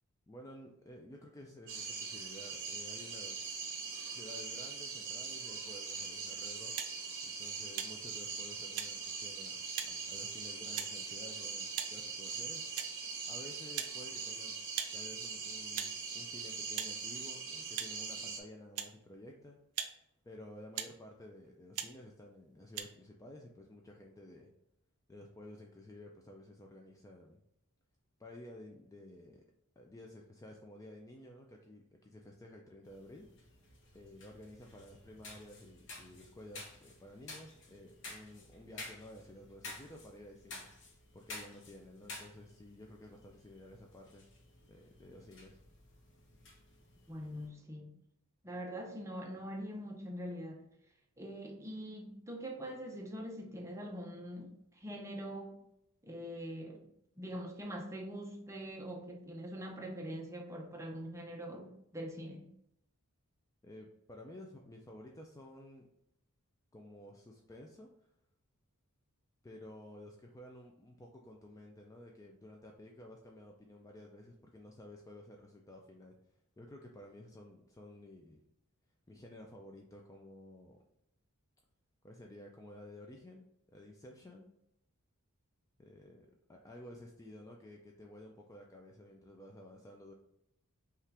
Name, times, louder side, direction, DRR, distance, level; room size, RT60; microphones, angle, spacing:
voice 1, 0.3-3.5 4.1-6.7 7.2-12.7 13.3-14.6 14.9-19.6 20.2-24.5 25.1-27.4 28.2-29.4 29.8-33.3 33.9-40.7 41.1-44.2 44.7-45.6 63.6-65.9 66.7-67.9 69.4-76.2 76.6-78.4 79.1-80.8 82.0-84.5 85.8-90.1, left 1 dB, 15° left, 0 dB, 0.4 m, -53 dB
sound 1, 1.7-18.4, right 5 dB, 60° right, 0.9 m, -42 dB
sound 2, 6.7-6.9 7.7-7.9 8.8-8.9 9.8-9.9 10.8-10.9 11.7-11.9 12.7-12.9 13.7-14.0 14.7-14.9 15.7-15.9 16.8-16.9 17.7-17.9 18.8-18.9 19.7-19.9 20.7-21.0 21.7-21.9 22.7-22.8, right 9 dB, 85° right, 0.5 m, -39 dB
sound 3, 32.8-47.5, left 2 dB, 60° left, 0.9 m, -52 dB
voice 2, 47.1-47.9 48.4-50.7 51.2-55.6 56.0-56.9 57.2-62.5, equal, 15° right, 1 dB, 0.7 m, -43 dB
5.6 x 2.5 x 3.4 m, 0.77 s
head